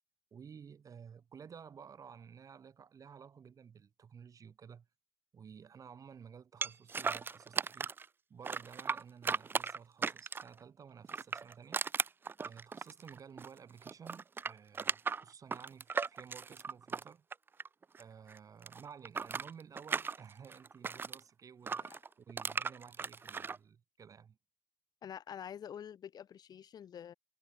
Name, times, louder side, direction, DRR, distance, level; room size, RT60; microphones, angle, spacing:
voice 1, 0.3-4.9 5.3-7.9 8.3-11.8 12.4-17.2 18.0-24.4, right 7 dB, 40° right, 1.4 m, -54 dB
sound 1, 6.6-8.1 8.4-10.6 11.0-13.6 13.8-18.0 18.3-21.2 21.7-23.6, right 5 dB, 25° right, 0.3 m, -37 dB
voice 2, 25.0-27.1, left 9 dB, 50° left, 0.9 m, -47 dB
cardioid pair, 105°, 8 cm